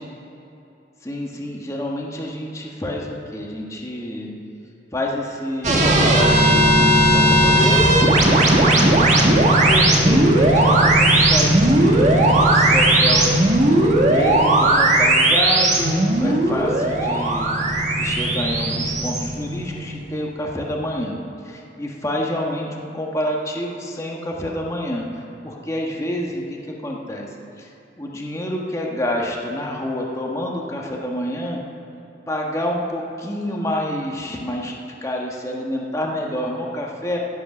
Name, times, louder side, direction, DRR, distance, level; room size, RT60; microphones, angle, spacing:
voice 1, 1.0-4.3 4.9-7.9 8.4-27.3 27.6-27.7 28.0-31.6 32.3-34.8 35.0-37.2, left 1 dB, 15° left, -1 dB, 1.3 m, -28 dB
sound 1, 5.6-20.2, right 1 dB, 40° right, 1.7 m, -16 dB
16.0 x 8.3 x 6.1 m, 2.9 s
head